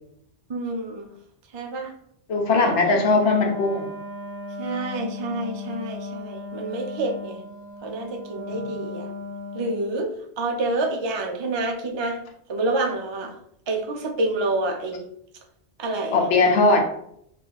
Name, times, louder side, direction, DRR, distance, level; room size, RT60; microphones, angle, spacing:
voice 1, 0.5-1.1 1.5-1.9 2.6-2.9 4.6-7.4 7.8-9.1 9.5-12.2 12.5-13.4 13.7-15.1 15.8-16.2, right 2 dB, 45° right, 2 dB, 0.3 m, -28 dB
voice 2, 2.3-3.9 8.5-8.6 16.1-16.9, left 3 dB, 85° left, 2 dB, 1.0 m, -19 dB
Wind instrument woodwind instrument, 3.3-10.0, left 3 dB, 35° left, 0.7 m, -36 dB
2.6 x 2.4 x 3.9 m, 0.70 s
omnidirectional pair, 1.1 m